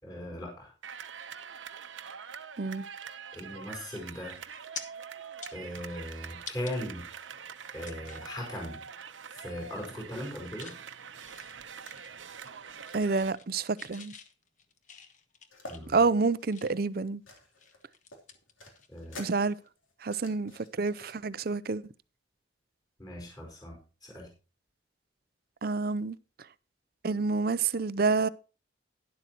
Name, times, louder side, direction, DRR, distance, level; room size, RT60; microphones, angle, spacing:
voice 1, 0.0-0.7 3.3-4.4 5.5-7.1 7.7-8.8 9.3-10.7 15.7-16.0 18.9-19.2 23.0-24.3, left 1 dB, 20° left, 4.9 m, -39 dB
sound 1, 0.8-13.3, right 7 dB, 75° right, 0.9 m, -45 dB
sound 2, 4.3-4.8 5.3-6.8 7.2-7.3 7.8-8.3 8.7-8.9 9.2-9.7 10.0-10.8 11.2-12.5 12.8-13.5 13.8-16.9 17.4-19.2 19.5-19.7 21.6-21.7, left 6 dB, 40° left, 1.2 m, -48 dB
voice 2, 12.9-14.1 15.9-17.2 19.2-19.5 20.0-20.5 20.8-21.8 25.6-26.2 27.0-28.3, right 4 dB, 50° right, 0.5 m, -28 dB
sound 3, 15.5-15.8 16.3-17.8 18.1-21.2, left 1 dB, 90° left, 3.4 m, -48 dB
12.0 x 11.5 x 3.0 m
head